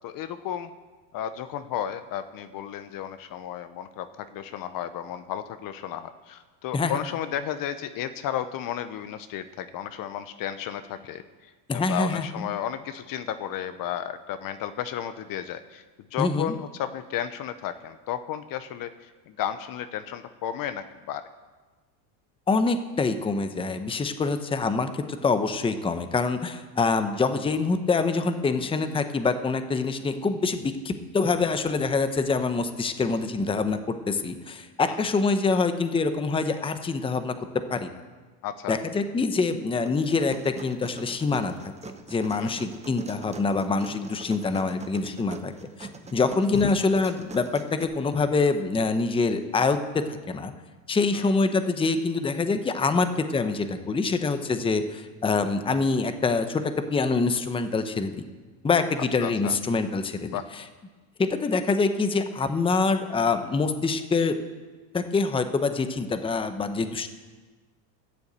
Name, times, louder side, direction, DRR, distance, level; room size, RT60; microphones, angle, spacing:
voice 1, 0.0-0.7 1.1-15.8 16.1-21.2 34.9-35.0 38.4-38.8 42.4-42.5 46.5-46.7 51.1-51.3 59.2-59.6 60.3-60.5, left 10 dB, 45° left, 11 dB, 0.8 m, -33 dB
voice 2, 11.7-12.5 16.2-16.5 22.5-37.3 37.7-37.9 38.7-41.7 42.1-45.5 45.8-50.5 50.9-58.2 58.6-60.4 61.2-64.4 64.9-67.1, left 4 dB, 10° left, 9 dB, 0.8 m, -25 dB
sound 1, 39.9-47.8, right 4 dB, 15° right, 0.9 m, -43 dB
13.0 x 6.9 x 8.2 m, 1.3 s
supercardioid pair, 115°, 50 cm